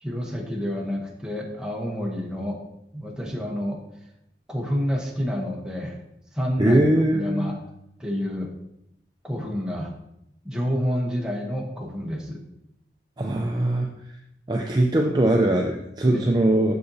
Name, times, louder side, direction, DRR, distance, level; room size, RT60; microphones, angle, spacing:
voice 1, 0.0-2.6 2.9-3.8 4.5-6.0 6.3-6.8 7.1-7.6 8.0-8.5 9.2-9.9 10.4-12.4 16.0-16.2, equal, 5° right, -1 dB, 0.9 m, -28 dB
voice 2, 6.6-7.6 13.2-14.0 14.5-16.7, right 1 dB, 25° right, 1 dB, 0.4 m, -21 dB
6.9 x 6.5 x 2.7 m, 0.82 s
head